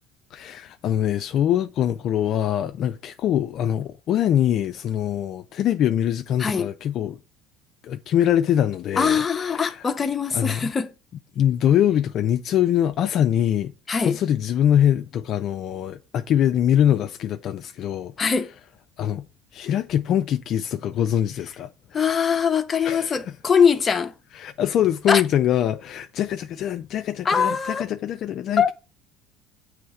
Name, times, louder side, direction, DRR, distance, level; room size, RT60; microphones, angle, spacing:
voice 1, 0.3-7.2 7.8-9.2 9.5-9.7 10.3-10.7 11.4-13.7 14.0-18.3 19.0-19.3 19.5-21.7 22.8-23.2 24.4-28.7, left 10 dB, 55° left, 0.4 m, -23 dB
voice 2, 9.0-10.9 13.9-14.2 18.2-18.5 21.9-24.1 25.1-25.2 27.2-27.8 28.6-28.7, left 6 dB, 30° left, 0.7 m, -22 dB
7.7 x 3.2 x 4.8 m
supercardioid pair, 105°, 0 cm